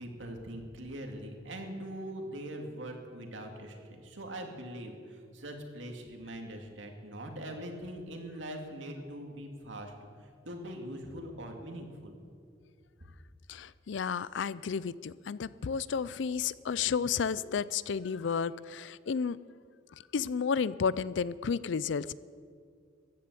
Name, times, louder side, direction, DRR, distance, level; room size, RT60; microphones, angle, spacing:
voice 1, 0.0-12.1, right 1 dB, 75° right, 3 dB, 2.3 m, -42 dB
voice 2, 13.5-19.4 20.1-22.1, left 6 dB, 70° left, 18 dB, 0.4 m, -32 dB
14.5 x 10.5 x 8.2 m, 2.2 s
head